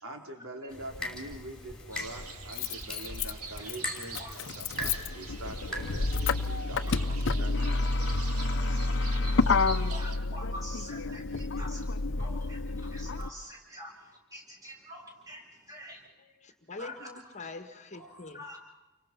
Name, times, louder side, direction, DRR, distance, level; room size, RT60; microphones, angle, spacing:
voice 1, 0.0-7.1 7.4-8.2, right 1 dB, 65° right, 3 dB, 3.4 m, -44 dB
sound 1, 0.7-6.6, left 1 dB, 5° left, 5.7 m, -41 dB
Motor vehicle (road), 0.9-1.0 2.2-13.3, left 3 dB, 60° left, 0.9 m, -29 dB
sound 2, 1.9-10.2, right 5 dB, 80° right, 2.3 m, -45 dB
voice 2, 3.6-4.4 6.8-7.0 8.2-8.6 9.1-11.8 12.2-16.0 16.8-17.1 17.9-18.6, left 1 dB, 15° right, 0 dB, 7.4 m, -46 dB
voice 3, 16.4-18.4, left 3 dB, 35° left, 7 dB, 1.6 m, -44 dB
29.5 x 24.0 x 5.9 m, 1.1 s
head